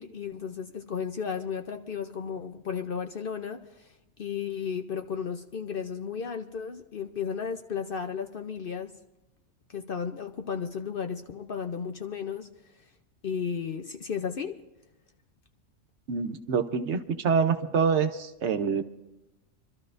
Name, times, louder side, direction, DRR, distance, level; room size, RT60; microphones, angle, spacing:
voice 1, 0.0-3.9 4.2-8.9 9.7-12.5 13.2-14.5, left 6 dB, 55° left, 6 dB, 0.7 m, -34 dB
voice 2, 16.1-18.8, right 6 dB, 65° right, 8 dB, 1.0 m, -26 dB
27.5 x 12.5 x 2.6 m, 0.96 s
omnidirectional pair, 1.4 m